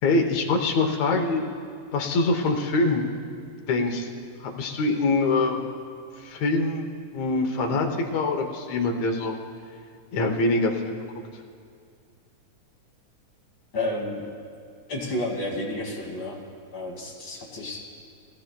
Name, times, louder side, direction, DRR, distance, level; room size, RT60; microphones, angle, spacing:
voice 1, 0.0-1.4 1.9-3.1 3.7-4.1 4.4-5.7 6.2-6.9 7.1-7.9 8.1-9.4 10.1-11.0, left 3 dB, 70° left, 3 dB, 2.2 m, -24 dB
voice 2, 13.7-14.3 14.9-16.4 16.7-17.8, left 1 dB, 40° left, -2 dB, 2.9 m, -31 dB
23.0 x 17.0 x 2.3 m, 2.3 s
omnidirectional pair, 3.5 m